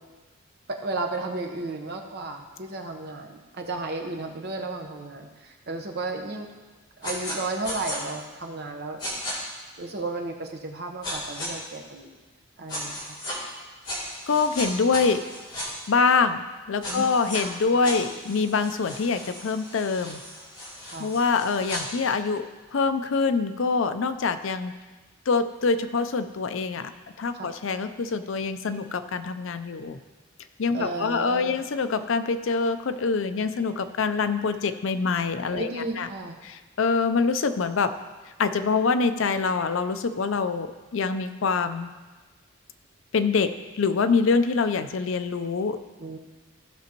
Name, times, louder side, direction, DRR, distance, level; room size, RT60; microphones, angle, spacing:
voice 1, 0.7-6.5 7.0-9.0 9.8-12.2 12.6-13.2 16.9-17.1 20.9-21.1 27.3-27.5 30.7-31.6 35.5-36.4 46.0-46.2, right 2 dB, 50° right, 3 dB, 1.0 m, -33 dB
sound 1, 7.0-7.4 7.6-8.0 9.0-9.3 11.0-11.5 12.7-13.4 13.8-15.7 16.8-17.4 17.8-21.8, equal, 25° left, 2.7 m, -35 dB
voice 2, 14.3-15.2 15.9-20.2 21.0-22.4 22.7-24.7 25.3-26.9 27.2-30.0 30.6-36.1 36.4-37.9 38.4-41.9 43.1-45.8, left 4 dB, 65° left, 10 dB, 0.5 m, -25 dB
15.0 x 6.1 x 3.0 m, 1.3 s
head